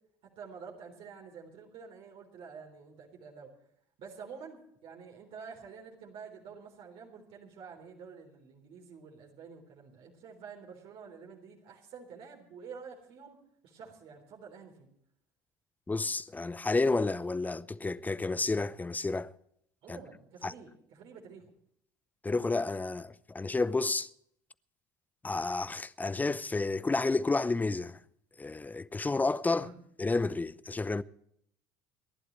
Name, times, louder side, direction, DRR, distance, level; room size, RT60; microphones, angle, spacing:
voice 1, 0.4-3.5 4.0-13.4 13.6-14.9 19.8-21.5 29.5-29.8, right 6 dB, 60° right, 3.8 m, -49 dB
voice 2, 15.9-19.3 19.9-20.0 20.4-20.5 22.2-24.1 25.2-28.0 28.4-29.7 30.0-31.0, left 3 dB, 15° left, 0.7 m, -30 dB
29.0 x 11.5 x 3.2 m
hypercardioid pair, 75°, 10 cm